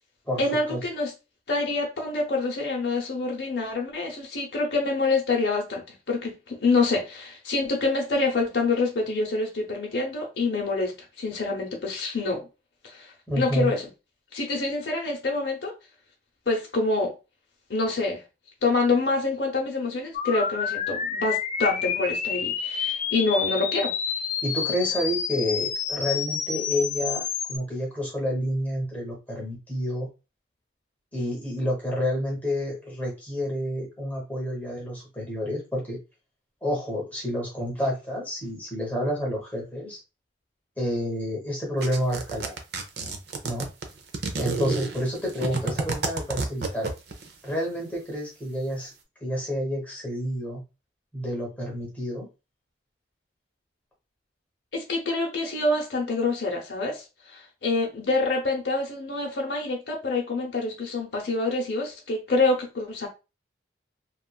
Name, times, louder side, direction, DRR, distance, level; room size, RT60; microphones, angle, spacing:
voice 1, 0.4-1.1 1.5-12.5 12.8-13.9 14.3-15.7 16.5-17.1 17.7-18.2 18.6-23.9 54.7-63.1, left 3 dB, 70° left, 0.7 m, -26 dB
voice 2, 13.3-13.7 24.4-30.1 31.1-36.0 36.6-40.0 40.8-42.5 43.4-43.7 44.4-46.9 47.4-48.9 49.2-50.6 51.1-52.3, equal, 10° left, 0.9 m, -29 dB
sound 1, 20.1-27.6, left 7 dB, 40° left, 0.3 m, -29 dB
sound 2, 41.8-47.3, right 3 dB, 60° right, 0.5 m, -30 dB
3.0 x 2.3 x 2.3 m
head